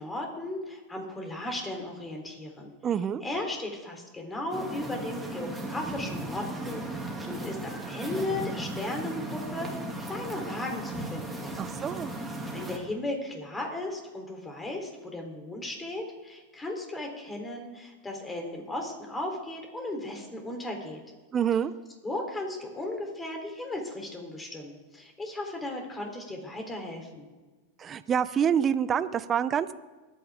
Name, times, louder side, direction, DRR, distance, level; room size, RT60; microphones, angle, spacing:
voice 1, 0.0-2.7 3.2-9.7 10.0-11.5 12.5-21.0 22.0-27.3, left 1 dB, 15° left, 2 dB, 3.6 m, -36 dB
voice 2, 2.8-3.2 11.6-12.1 21.3-21.7 27.8-29.7, right 8 dB, 30° right, 13 dB, 0.6 m, -27 dB
sound 1, 4.5-12.8, right 1 dB, 5° right, 2.6 m, -36 dB
23.0 x 9.3 x 3.7 m, 1.3 s
hypercardioid pair, 120°, 0 cm